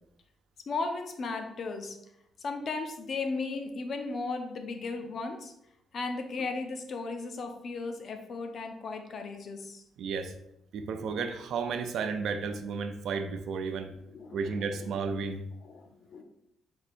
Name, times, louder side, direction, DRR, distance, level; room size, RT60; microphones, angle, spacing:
voice 1, 0.7-2.0 2.4-5.5 5.9-9.8 14.1-14.9 15.6-16.2, left 3 dB, 45° left, 6 dB, 0.5 m, -36 dB
voice 2, 10.0-10.3 10.7-13.9 14.3-15.5, right 5 dB, 65° right, 8 dB, 0.4 m, -33 dB
4.4 x 2.7 x 4.2 m, 0.82 s
cardioid pair, 170°, 0 cm